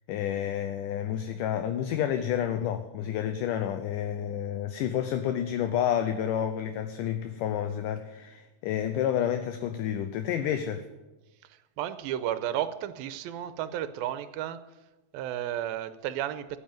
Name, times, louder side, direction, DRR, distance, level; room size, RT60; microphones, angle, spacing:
voice 1, 0.1-10.8, left 10 dB, 75° left, 9 dB, 2.1 m, -30 dB
voice 2, 11.8-14.6 15.1-16.6, right 11 dB, 90° right, 12 dB, 2.5 m, -32 dB
15.5 x 8.2 x 9.1 m, 1.1 s
omnidirectional pair, 4.2 m